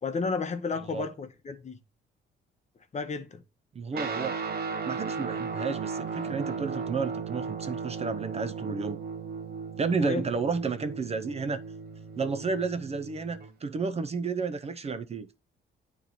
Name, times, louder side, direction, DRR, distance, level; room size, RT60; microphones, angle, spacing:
voice 1, 0.0-1.8 2.9-3.4 10.0-10.2, left 4 dB, 35° left, 0.9 m, -32 dB
voice 2, 3.7-4.4 4.8-9.0 9.8-11.6 12.2-15.3, right 5 dB, 30° right, 0.5 m, -31 dB
Guitar, 3.9-13.6, right 5 dB, 50° right, 1.0 m, -36 dB
8.9 x 3.1 x 4.0 m
cardioid pair, 90°, 20 cm